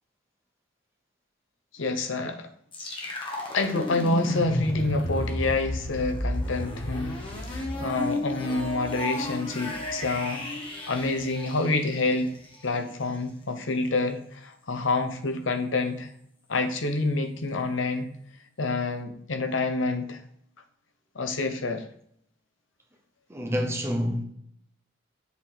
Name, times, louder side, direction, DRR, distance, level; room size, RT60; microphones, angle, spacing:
voice 1, 1.7-2.5 3.5-7.2 7.5-10.4 10.9-12.3 12.6-16.1 16.5-18.1 18.6-20.2 21.1-21.8, left 3 dB, 85° left, 0.9 m, -27 dB
sound 1, 2.7-12.6, left 1 dB, 25° left, 1.4 m, -32 dB
voice 2, 23.3-24.2, equal, 15° right, 0.9 m, -27 dB
7.3 x 4.0 x 4.3 m
head